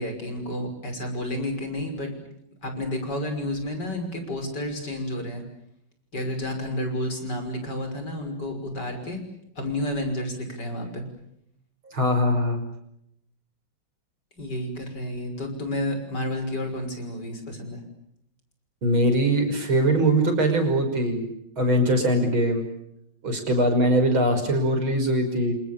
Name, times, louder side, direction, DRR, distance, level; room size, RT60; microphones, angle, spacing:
voice 1, 0.0-2.1 2.6-5.4 6.1-9.2 9.6-11.0 14.4-17.8, left 1 dB, 50° left, 6 dB, 6.6 m, -30 dB
voice 2, 11.9-12.6 18.8-21.3 21.6-22.7 23.2-25.5, right 1 dB, 70° right, 7 dB, 6.5 m, -22 dB
30.0 x 27.0 x 6.9 m, 0.76 s
omnidirectional pair, 2.3 m